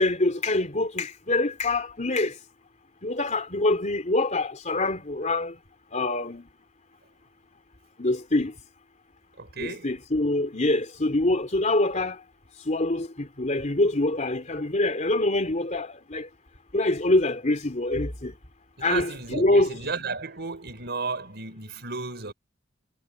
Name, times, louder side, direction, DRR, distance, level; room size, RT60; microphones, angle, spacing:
voice 1, 0.0-2.4 3.0-5.6 5.9-6.5 8.0-8.5 9.6-12.2 12.6-16.3 16.7-18.4 18.8-19.9, left 2 dB, 40° left, 3.2 m, -25 dB
voice 2, 9.4-9.9 18.8-22.3, right 4 dB, 55° right, 6.2 m, -33 dB
head